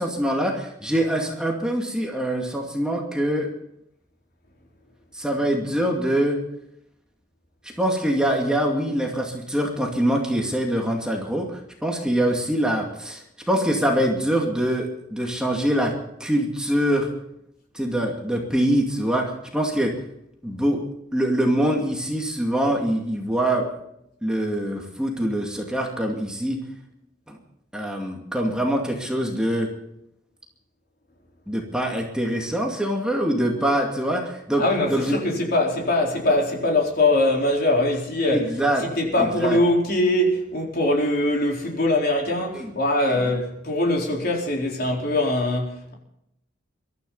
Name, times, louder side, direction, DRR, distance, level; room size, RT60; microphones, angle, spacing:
voice 1, 0.0-3.5 5.1-6.4 7.8-17.1 17.7-19.9 20.4-20.8 21.1-23.7 24.2-26.6 27.7-29.7 31.5-34.6 34.9-35.2 38.3-38.9 39.2-39.6 42.5-42.7 43.1-43.2, right 1 dB, 5° right, 2.4 m, -24 dB
voice 2, 34.6-38.5 39.0-45.9, left 1 dB, 50° left, 4.3 m, -22 dB
23.0 x 13.5 x 4.1 m
head